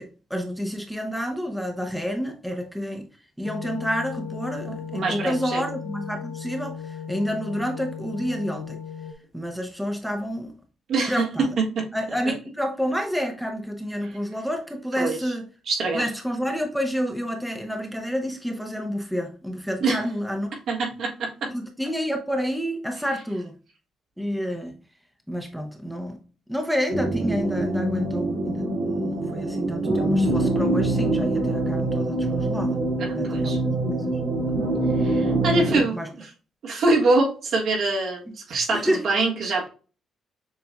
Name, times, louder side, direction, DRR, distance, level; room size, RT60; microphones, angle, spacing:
voice 1, 0.0-3.1 3.4-8.8 9.3-10.5 11.1-11.5 11.9-15.4 15.9-20.5 21.5-23.6 24.2-24.8 25.3-26.2 26.5-32.8 33.1-34.2 35.5-36.1 38.7-39.0, equal, ahead, 0.7 m, -29 dB
sound 1, 3.4-9.1, left 7 dB, 60° left, 0.5 m, -36 dB
voice 2, 4.7-5.6 10.9-11.5 11.7-11.9 15.0-15.2 15.7-16.0 19.8-20.0 20.7-21.5 33.0-33.6 35.0-36.3 36.6-39.7, right 3 dB, 65° right, 1.5 m, -24 dB
sound 2, 26.9-35.8, right 2 dB, 80° right, 1.5 m, -24 dB
6.9 x 2.6 x 2.3 m
cardioid pair, 90°, 0 cm